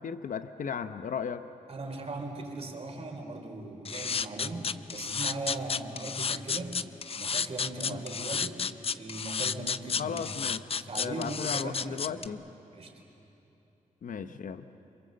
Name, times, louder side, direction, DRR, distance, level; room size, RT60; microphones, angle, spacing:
voice 1, 0.0-1.4 7.8-8.0 10.0-10.6 10.9-12.4 14.0-14.7, left 7 dB, 70° left, 10 dB, 0.9 m, -36 dB
voice 2, 1.7-6.8 7.2-8.6 9.0-10.4 10.7-12.3 12.7-12.9, right 2 dB, 45° right, 2 dB, 3.9 m, -39 dB
sound 1, 3.8-12.3, left 6 dB, 45° left, 0.6 m, -31 dB
27.5 x 25.0 x 7.7 m, 3.0 s
cardioid pair, 95°, 14 cm